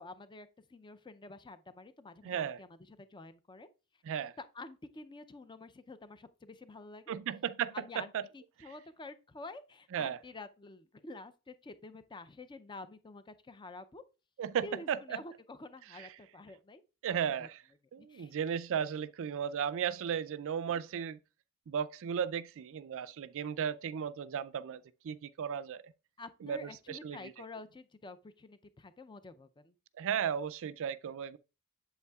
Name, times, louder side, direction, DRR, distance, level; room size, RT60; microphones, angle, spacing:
voice 1, 0.0-3.7 4.4-7.2 7.7-14.0 14.6-16.8 17.4-17.5 18.0-18.3 26.2-29.8, left 3 dB, 20° left, 0.5 m, -49 dB
voice 2, 2.2-2.6 4.0-4.3 7.1-8.3 9.9-10.2 14.4-15.2 15.9-16.1 17.0-17.6 17.9-21.2 21.7-25.8 26.4-27.3 30.0-31.4, right 8 dB, 60° right, 0.4 m, -35 dB
8.1 x 7.5 x 2.3 m
head